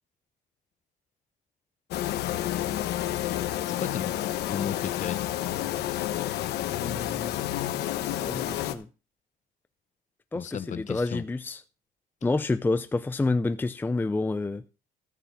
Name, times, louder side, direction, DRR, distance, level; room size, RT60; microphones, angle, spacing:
sound 1, 1.9-8.7, left 13 dB, 80° left, 1.1 m, -30 dB
voice 1, 3.7-4.1 4.5-5.2 10.3-11.2, left 8 dB, 45° left, 1.1 m, -34 dB
voice 2, 6.8-7.3 8.2-8.9 10.3-11.6 12.2-14.6, left 3 dB, 10° left, 0.5 m, -28 dB
13.5 x 6.1 x 5.8 m
cardioid pair, 110°, 17 cm